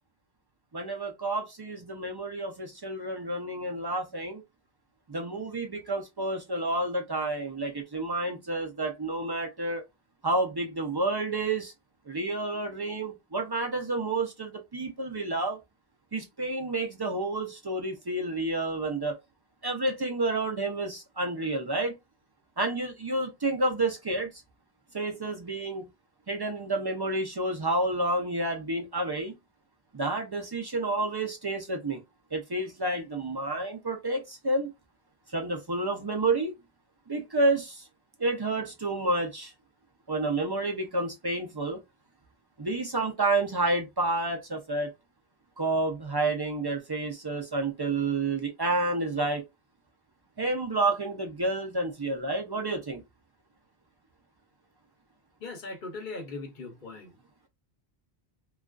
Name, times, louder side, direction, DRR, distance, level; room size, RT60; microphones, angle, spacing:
voice 1, 0.7-4.4 5.1-9.8 10.2-11.7 12.1-15.6 16.1-19.2 19.6-21.9 22.6-24.3 24.9-25.9 26.3-29.3 29.9-32.0 32.3-34.7 35.3-36.5 37.1-37.8 38.2-39.5 40.1-41.8 42.6-44.9 45.6-49.4 50.4-53.0, right 2 dB, 40° right, 0.3 m, -29 dB
voice 2, 55.4-57.1, left 3 dB, 55° left, 0.8 m, -39 dB
2.3 x 2.3 x 2.2 m
omnidirectional pair, 1.1 m